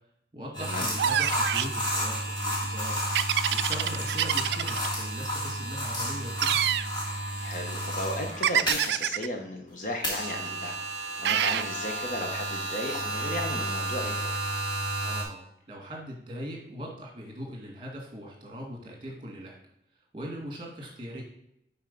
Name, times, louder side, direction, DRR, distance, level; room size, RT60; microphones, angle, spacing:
voice 1, 0.3-3.0 3.5-6.6 15.0-19.6 20.1-21.2, equal, 30° right, -1 dB, 1.9 m, -40 dB
sound 1, 0.5-9.1 10.0-15.2, right 1 dB, 25° left, 2.0 m, -31 dB
sound 2, 1.0-1.8 3.1-4.9 6.4-6.9 8.4-9.3 11.2-11.7, right 10 dB, 70° right, 0.3 m, -26 dB
voice 2, 7.4-10.8 11.2-14.3, left 1 dB, 45° left, 3 dB, 1.0 m, -35 dB
5.5 x 4.6 x 5.3 m, 0.76 s
head